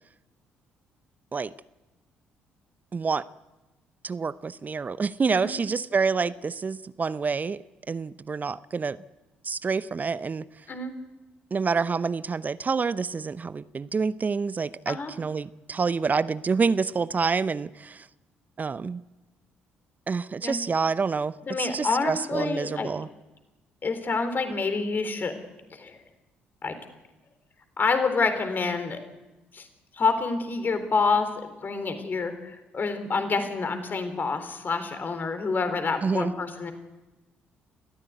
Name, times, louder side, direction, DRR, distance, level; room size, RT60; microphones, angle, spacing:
voice 1, 2.9-3.2 4.0-9.0 9.4-10.4 11.5-18.1 18.6-19.0 20.1-23.1 36.0-36.3, right 5 dB, 30° right, 17 dB, 0.8 m, -27 dB
voice 2, 21.5-22.9 23.8-25.3 25.7-26.0 26.6-26.8 27.8-29.0 29.5-29.7 29.9-31.3 31.6-36.7, left 4 dB, 35° left, 8 dB, 3.8 m, -27 dB
30.0 x 15.0 x 9.6 m, 1.1 s
figure-of-eight pair, 45°, 5 cm